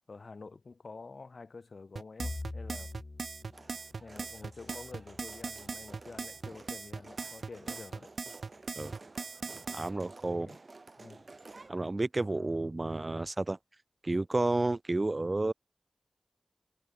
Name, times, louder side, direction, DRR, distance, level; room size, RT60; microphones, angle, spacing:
voice 1, 0.0-3.0 4.0-8.2 10.3-10.6 11.0-11.2, left 4 dB, 70° left, 2.9 m, -48 dB
sound 1, 2.0-9.9, right 4 dB, 85° right, 1.2 m, -39 dB
Bowed string instrument, 2.2-6.6, left 2 dB, 40° left, 1.5 m, -45 dB
sound 2, 3.5-11.7, right 3 dB, 50° right, 7.4 m, -53 dB
voice 2, 9.7-10.5 11.7-13.6 14.0-15.5, right 2 dB, 35° right, 2.6 m, -31 dB
wide cardioid pair, 65°, 0 cm